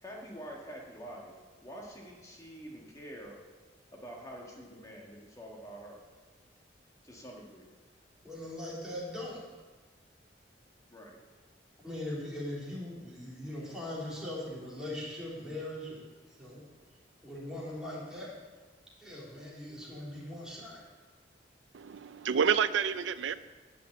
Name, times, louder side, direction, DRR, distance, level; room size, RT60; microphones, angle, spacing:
voice 1, 0.0-1.3 1.6-3.4 3.9-6.0 7.0-7.7 10.9-11.2, right 1 dB, 20° left, -1 dB, 1.6 m, -46 dB
voice 2, 8.2-9.4 11.8-16.6 17.2-18.3 19.0-20.9, left 1 dB, 5° right, -6 dB, 3.6 m, -40 dB
voice 3, 21.7-23.4, right 7 dB, 90° right, 14 dB, 0.4 m, -29 dB
11.5 x 5.9 x 8.7 m, 1.3 s
head